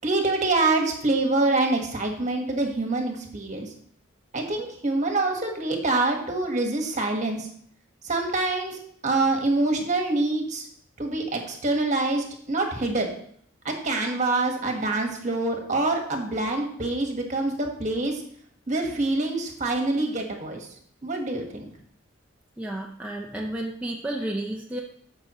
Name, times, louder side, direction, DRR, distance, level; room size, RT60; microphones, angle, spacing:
voice 1, 0.0-3.7 4.3-7.5 8.0-10.6 11.0-13.1 13.6-18.2 18.7-20.6 21.0-21.7, right 2 dB, 35° right, 2 dB, 1.5 m, -25 dB
voice 2, 22.6-24.8, right 1 dB, 5° right, -2 dB, 0.6 m, -31 dB
14.0 x 5.6 x 3.0 m, 0.63 s
head